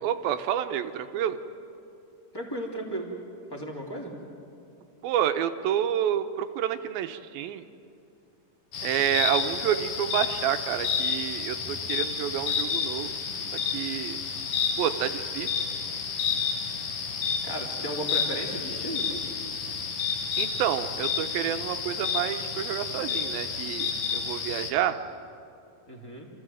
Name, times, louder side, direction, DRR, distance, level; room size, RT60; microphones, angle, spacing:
voice 1, 0.0-1.4 5.0-7.6 8.8-13.1 13.7-14.2 14.8-15.5 20.4-25.0, right 10 dB, 85° right, 9 dB, 2.6 m, -29 dB
voice 2, 2.3-3.1 3.5-4.1 17.4-19.2 25.9-26.3, right 1 dB, 5° left, -1 dB, 2.2 m, -35 dB
sound 1, 8.7-24.7, left 6 dB, 70° left, 3.4 m, -30 dB
28.0 x 14.5 x 7.7 m, 2.6 s
omnidirectional pair, 4.3 m